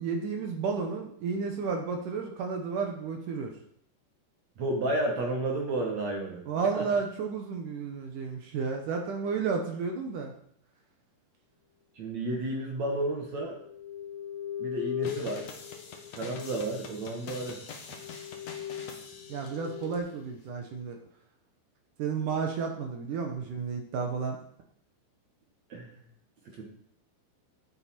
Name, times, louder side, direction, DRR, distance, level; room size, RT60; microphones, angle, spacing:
voice 1, 0.0-3.5 6.5-10.3 19.3-21.0 22.0-24.4, right 5 dB, 75° right, 3 dB, 1.9 m, -32 dB
voice 2, 4.6-6.5 6.7-6.8 12.0-13.6 14.6-15.5 16.1-17.6 25.7-25.9 26.5-26.6, right 2 dB, 60° right, 0 dB, 2.0 m, -32 dB
sound 1, 13.2-16.8 17.4-17.5 17.9-20.0, left 9 dB, 80° left, 3.9 m, -39 dB
sound 2, 15.0-20.0, left 5 dB, 60° left, 1.8 m, -45 dB
14.0 x 9.2 x 4.4 m, 0.65 s
omnidirectional pair, 5.2 m